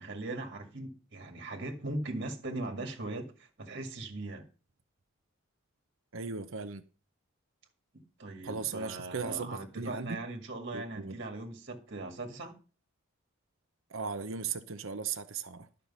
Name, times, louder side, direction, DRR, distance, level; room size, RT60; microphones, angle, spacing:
voice 1, 0.0-4.4 8.2-12.5, right 2 dB, 50° right, 2.1 m, -39 dB
voice 2, 6.1-6.8 8.4-10.2 10.7-11.1 13.9-15.7, right 5 dB, 65° right, 0.9 m, -37 dB
12.0 x 6.6 x 5.5 m
head